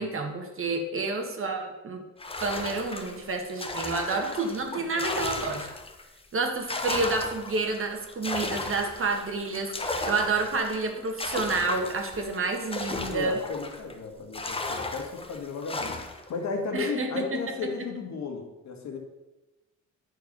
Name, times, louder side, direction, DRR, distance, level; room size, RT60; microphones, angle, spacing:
voice 1, 0.0-2.0 2.4-5.7 6.3-13.4 16.7-17.4, right 3 dB, 45° right, 3 dB, 1.6 m, -29 dB
sound 1, 2.2-6.0 6.4-13.9 14.3-16.3, left 2 dB, 20° left, 1.0 m, -35 dB
voice 2, 4.7-5.0 13.1-19.0, left 4 dB, 65° left, 3 dB, 1.7 m, -34 dB
10.5 x 4.6 x 5.3 m, 1.0 s
cardioid pair, 90°, 30 cm